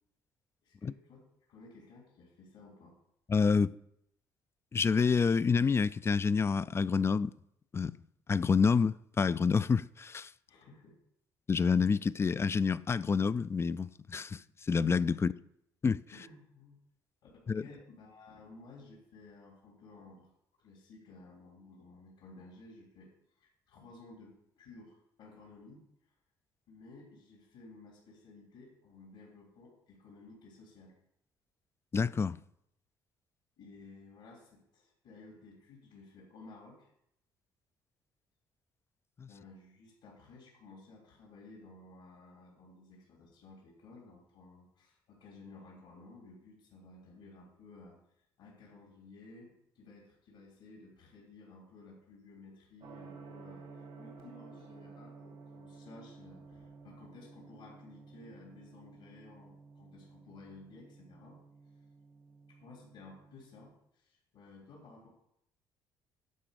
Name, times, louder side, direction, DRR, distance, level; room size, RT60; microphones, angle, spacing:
voice 1, 0.6-3.0 10.5-11.0 15.1-15.3 16.1-16.8 17.2-20.3 20.6-26.1 26.7-30.9 33.6-36.9 39.3-48.0 48.4-61.4 62.5-65.1, left 3 dB, 80° left, 3.3 m, -55 dB
voice 2, 3.3-3.7 4.7-7.3 7.7-8.0 8.3-10.3 11.5-14.4 14.7-15.3 15.8-16.0 17.5-17.6 31.9-32.4 39.2-39.3, left 5 dB, 30° left, 0.3 m, -28 dB
Gong, 52.8-63.6, right 4 dB, 80° right, 2.1 m, -53 dB
11.5 x 4.1 x 6.9 m
supercardioid pair, 70°, 9 cm